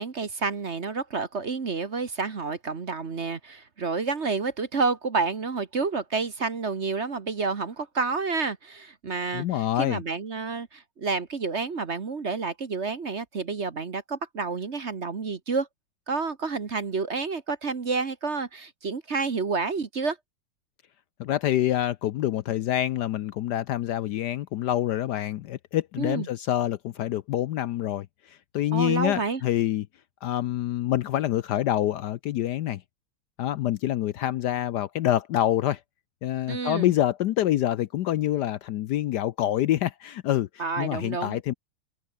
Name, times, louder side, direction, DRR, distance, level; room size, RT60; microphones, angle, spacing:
voice 1, 0.0-15.7 16.1-20.2 26.0-26.3 28.7-29.4 36.5-36.9 40.6-41.4, right 4 dB, 40° right, 1.5 m, -29 dB
voice 2, 9.3-10.0 21.2-29.9 30.2-32.8 33.4-35.8 36.2-41.5, left 12 dB, 70° left, 1.1 m, -26 dB
omnidirectional pair, 2.1 m